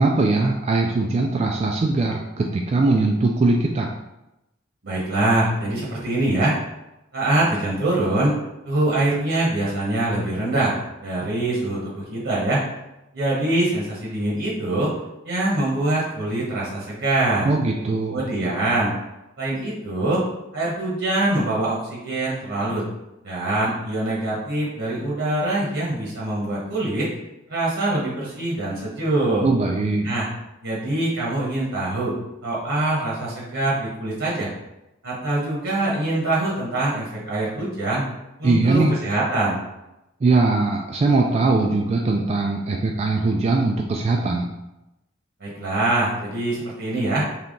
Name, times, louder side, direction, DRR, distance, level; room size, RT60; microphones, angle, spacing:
voice 1, 0.0-3.9 17.4-18.2 29.4-30.1 38.4-39.0 40.2-44.5, right 3 dB, 30° right, 0 dB, 0.3 m, -20 dB
voice 2, 4.8-6.6 7.1-8.4 8.6-12.6 13.1-14.9 15.2-17.5 18.1-18.9 19.4-20.3 20.5-22.8 23.2-27.1 27.5-29.5 30.0-30.3 30.6-32.1 32.4-34.5 35.0-38.0 38.4-39.6 45.4-47.3, right 2 dB, 70° right, -5 dB, 1.1 m, -24 dB
3.5 x 2.8 x 3.8 m, 0.93 s
head